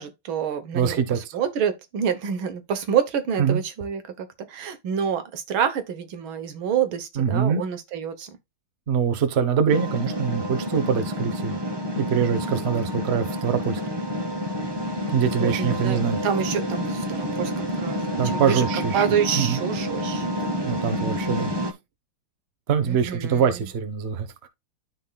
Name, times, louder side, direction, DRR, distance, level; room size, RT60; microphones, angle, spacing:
voice 1, 0.0-8.3 15.4-18.6 18.9-20.7 22.8-23.6, right 8 dB, 75° right, 1.9 m, -28 dB
voice 2, 0.7-1.4 3.4-3.6 7.2-7.6 8.9-11.6 11.9-13.8 15.1-16.2 18.2-19.0 19.4-19.6 20.7-21.5 22.7-24.3, right 7 dB, 45° right, 0.9 m, -23 dB
sound 1, 9.7-21.7, equal, 20° right, 0.7 m, -28 dB
13.0 x 4.4 x 2.3 m
omnidirectional pair, 2.3 m